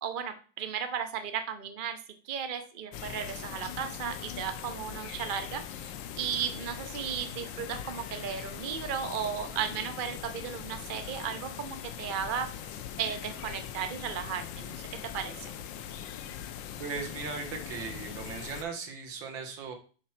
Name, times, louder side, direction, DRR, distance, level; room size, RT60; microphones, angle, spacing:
voice 1, 0.0-2.0 2.2-12.5 13.0-14.8 15.1-15.5, right 7 dB, 55° right, 7 dB, 0.5 m, -35 dB
sound 1, 2.9-18.6, left 9 dB, 75° left, 1.3 m, -41 dB
voice 2, 16.8-19.8, right 5 dB, 75° right, 3 dB, 2.1 m, -38 dB
7.2 x 4.3 x 5.8 m, 0.38 s
omnidirectional pair, 2.1 m